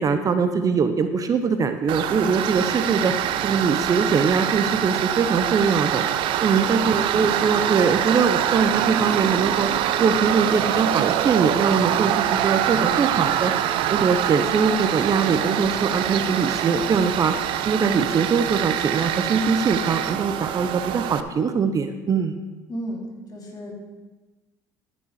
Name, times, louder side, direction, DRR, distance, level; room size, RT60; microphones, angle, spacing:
voice 1, 0.0-3.1 3.4-6.0 6.4-9.7 10.0-17.4 17.6-22.3, right 5 dB, 40° right, 9 dB, 0.8 m, -22 dB
Tools, 1.9-21.2, right 11 dB, 65° right, 0.6 m, -24 dB
voice 2, 22.7-23.0 23.3-23.7, equal, 40° left, -1 dB, 2.9 m, -34 dB
14.0 x 5.4 x 4.8 m, 1.2 s
supercardioid pair, 75°, 9 cm